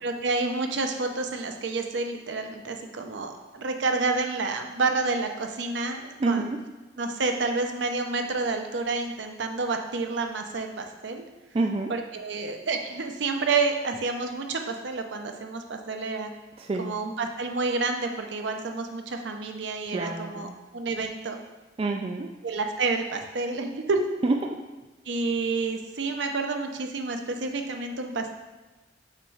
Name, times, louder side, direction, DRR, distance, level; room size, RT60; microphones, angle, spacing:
voice 1, 0.0-6.5 7.0-11.2 11.9-16.3 16.8-21.4 22.4-24.0 25.1-28.3, right 3 dB, 70° right, 4 dB, 0.6 m, -29 dB
voice 2, 6.2-6.6 11.5-11.9 16.6-16.9 19.9-20.6 21.8-22.3 24.2-24.6, right 3 dB, 30° right, 3 dB, 0.3 m, -27 dB
6.6 x 3.1 x 4.8 m, 1.2 s
head